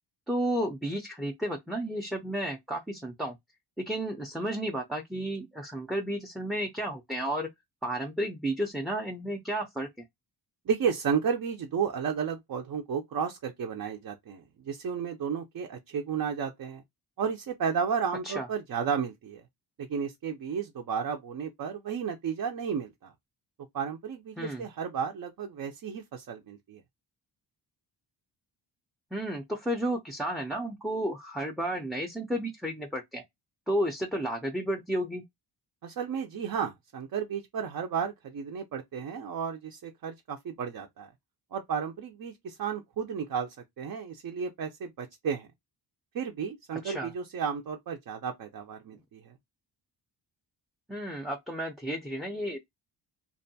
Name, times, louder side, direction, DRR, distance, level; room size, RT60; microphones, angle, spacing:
voice 1, 0.3-3.4 3.8-7.5 7.8-9.9 18.2-18.5 24.4-24.6 29.1-33.2 33.7-35.2 46.8-47.1 50.9-52.6, right 1 dB, ahead, 0.5 m, -32 dB
voice 2, 10.7-16.8 17.2-19.4 19.8-23.1 23.7-26.8 35.8-41.1 41.5-45.5 46.1-49.3, right 7 dB, 50° right, 0.6 m, -33 dB
2.6 x 2.2 x 2.7 m
cardioid pair, 100°, 43 cm